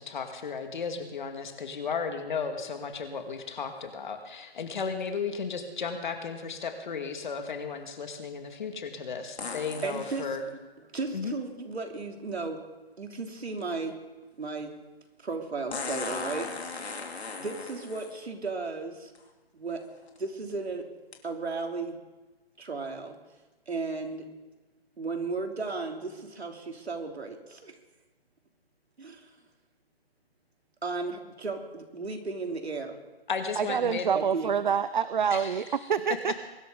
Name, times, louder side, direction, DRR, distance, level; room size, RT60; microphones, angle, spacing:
voice 1, 0.0-10.4 11.1-11.4 33.3-34.1 35.3-35.5, left 5 dB, 50° left, 5 dB, 2.2 m, -34 dB
sound 1, 2.9-3.0 9.4-10.3 12.3-12.4 15.7-18.2 19.1-19.2 19.9-20.2 21.1-21.2, left 4 dB, 85° left, 3.1 m, -37 dB
voice 2, 9.8-10.3 10.9-12.6 13.0-14.0 14.4-14.7 15.2-17.0 17.4-19.1 19.5-19.8 20.2-20.9 21.2-22.0 22.6-23.2 23.7-24.3 25.0-27.8 29.0-29.3 30.8-33.0 34.1-34.6, right 3 dB, 90° right, 3 dB, 3.0 m, -35 dB
voice 3, 33.6-36.4, right 7 dB, 50° right, 14 dB, 0.5 m, -27 dB
23.0 x 12.5 x 3.9 m, 1.2 s
hypercardioid pair, 165°, 31 cm